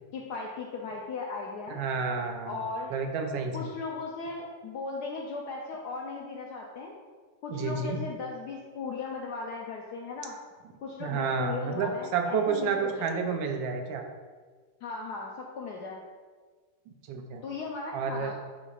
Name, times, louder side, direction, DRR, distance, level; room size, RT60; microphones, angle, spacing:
voice 1, 0.1-1.8 2.5-2.9 3.5-7.0 7.4-10.4 10.8-13.2 14.8-16.0 17.4-18.3, left 4 dB, 70° left, -1 dB, 1.1 m, -37 dB
voice 2, 1.7-2.6 2.9-3.7 7.5-8.0 11.0-14.0 17.1-17.4 17.9-18.3, right 5 dB, 80° right, 4 dB, 1.4 m, -30 dB
9.9 x 4.2 x 2.4 m, 1.5 s
omnidirectional pair, 2.1 m